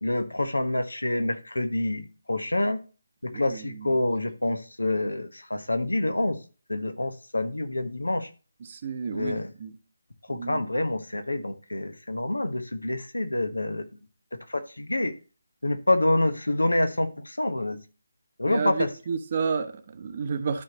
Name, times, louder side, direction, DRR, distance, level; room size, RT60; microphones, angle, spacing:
voice 1, 0.0-2.8 3.2-6.4 6.7-8.3 9.1-9.5 10.3-13.9 14.5-15.1 15.6-17.8 18.4-18.9, left 1 dB, 80° left, 1.2 m, -27 dB
voice 2, 3.3-4.0 8.6-9.8 10.3-10.6 18.5-20.6, right 5 dB, 40° right, 1.1 m, -31 dB
12.5 x 4.4 x 3.0 m
figure-of-eight pair, 150°, 0 cm